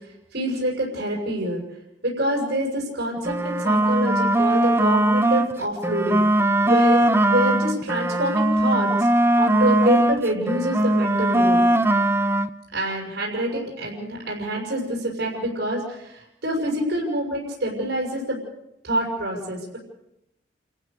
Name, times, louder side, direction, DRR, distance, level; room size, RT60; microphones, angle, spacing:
voice 1, 0.3-1.6 2.0-6.2 6.6-9.1 9.4-11.6 12.7-18.4 18.8-19.8, right 1 dB, 75° right, -2 dB, 6.7 m, -26 dB
sound 1, 3.2-5.5 5.8-10.2 10.5-12.5, right 1 dB, 15° right, 0.7 m, -20 dB
29.5 x 15.5 x 6.8 m, 0.86 s
head